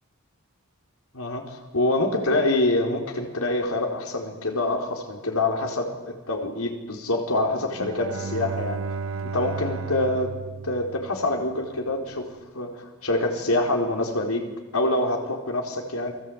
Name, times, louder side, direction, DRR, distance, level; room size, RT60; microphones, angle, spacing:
voice 1, 1.1-8.8 9.3-10.3 10.6-12.3 12.5-16.1, left 2 dB, 90° left, 2 dB, 4.5 m, -26 dB
Bowed string instrument, 7.6-11.7, right 4 dB, 70° right, 0.9 m, -34 dB
29.0 x 21.0 x 9.0 m, 1.1 s
head